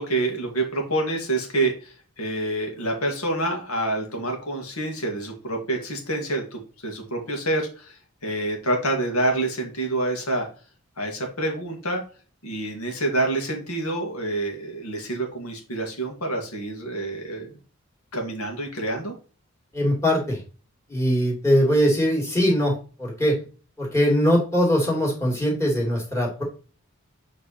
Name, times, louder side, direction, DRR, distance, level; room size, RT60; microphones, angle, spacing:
voice 1, 0.0-8.0 8.2-10.5 11.0-12.0 12.4-17.5 18.1-19.1, right 2 dB, 80° left, 2 dB, 2.3 m, -27 dB
voice 2, 19.7-20.4 20.9-23.4 23.8-26.4, equal, 15° left, -2 dB, 2.6 m, -21 dB
7.8 x 4.0 x 4.3 m, 0.36 s
head